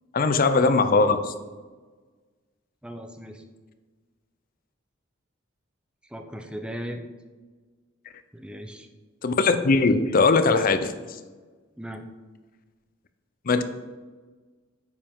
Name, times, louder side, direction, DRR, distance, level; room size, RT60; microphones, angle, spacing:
voice 1, 0.1-1.3 9.2-10.9 13.5-13.6, left 3 dB, 45° left, 10 dB, 0.5 m, -20 dB
voice 2, 2.8-3.4 6.1-7.0 8.3-8.9 11.8-12.0, equal, 5° right, 5 dB, 0.5 m, -37 dB
9.3 x 5.4 x 3.6 m, 1.3 s
head